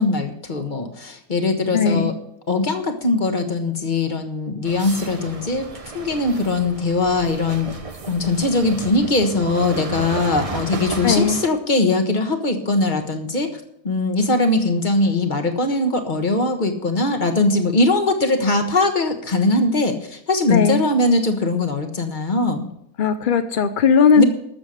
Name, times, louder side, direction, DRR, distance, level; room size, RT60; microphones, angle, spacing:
voice 1, 0.0-2.1 2.5-7.7 8.1-22.7 24.1-24.2, left 2 dB, 30° left, 6 dB, 1.4 m, -21 dB
voice 2, 1.7-2.1 11.0-11.4 20.5-20.8 23.0-24.2, left 6 dB, 65° left, 9 dB, 0.5 m, -17 dB
sound 1, 4.6-11.5, right 4 dB, 30° right, 0.7 m, -33 dB
13.0 x 7.3 x 6.4 m, 0.74 s
omnidirectional pair, 1.7 m